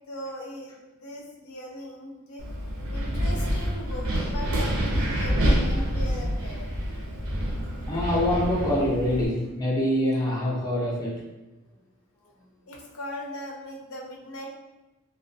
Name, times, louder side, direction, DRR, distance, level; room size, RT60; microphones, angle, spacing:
voice 1, 0.1-2.4 2.9-6.7 12.7-14.5, left 1 dB, 90° left, -1 dB, 0.6 m, -39 dB
Wind, 2.4-9.3, equal, 85° right, 0.6 m, -27 dB
voice 2, 7.9-11.2, left 1 dB, 20° left, -4 dB, 0.5 m, -25 dB
2.5 x 2.2 x 2.6 m, 1.0 s
head